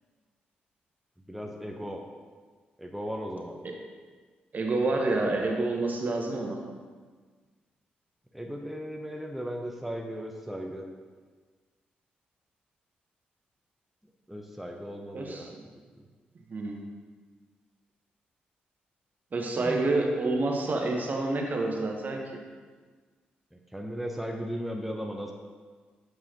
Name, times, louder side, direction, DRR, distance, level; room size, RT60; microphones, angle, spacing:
voice 1, 1.3-2.0 2.8-3.6 8.3-10.8 14.3-15.5 19.6-19.9 23.7-25.3, equal, 5° right, 1 dB, 0.7 m, -36 dB
voice 2, 4.5-6.6 15.1-15.6 16.5-16.8 19.3-22.4, right 2 dB, 45° right, 1 dB, 1.0 m, -28 dB
7.6 x 4.7 x 2.9 m, 1.5 s
supercardioid pair, 50°, 4 cm